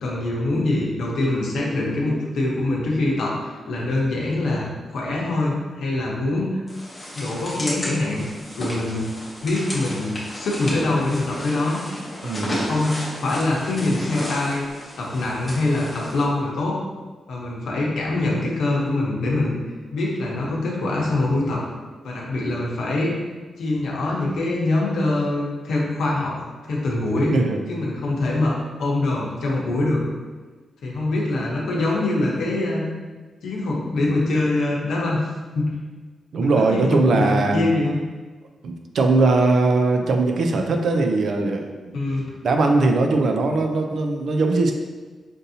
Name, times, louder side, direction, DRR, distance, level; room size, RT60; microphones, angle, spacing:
voice 1, 0.0-6.6 7.2-8.3 8.6-9.1 9.4-11.8 12.2-14.7 15.0-16.8 17.3-19.6 19.9-21.6 22.0-23.2 23.6-26.3 26.7-27.4 27.7-30.0 30.8-32.8 33.4-35.2 35.5-35.7 36.4-37.9 41.9-42.3, left 2 dB, 85° left, -4 dB, 0.9 m, -24 dB
sound 1, 6.7-16.2, left 1 dB, 15° left, 0.7 m, -34 dB
voice 2, 12.2-12.6 27.3-27.6 36.3-37.7 38.6-41.7 42.4-44.7, right 3 dB, 55° right, 4 dB, 0.4 m, -20 dB
5.2 x 2.6 x 2.7 m, 1.4 s
wide cardioid pair, 180°, 0 cm